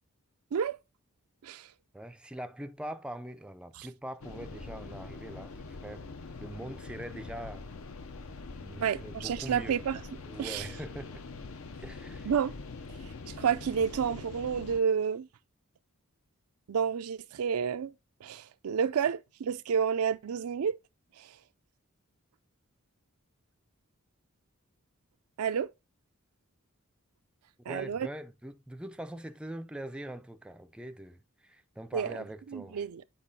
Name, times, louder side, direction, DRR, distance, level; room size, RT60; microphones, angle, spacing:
voice 1, 1.9-6.1 6.4-7.7 8.6-9.8 10.3-11.2 11.8-12.3 27.7-32.8, right 1 dB, 5° right, 0.3 m, -42 dB
sound 1, 4.2-14.8, left 3 dB, 65° left, 0.6 m, -44 dB
voice 2, 8.8-10.0 10.4-10.7 12.2-12.5 13.0-15.3 16.7-17.9 18.2-20.8 21.2-21.4 25.4-25.7 27.7-28.1 31.9-33.0, right 7 dB, 85° right, 0.4 m, -30 dB
8.4 x 4.4 x 2.7 m
head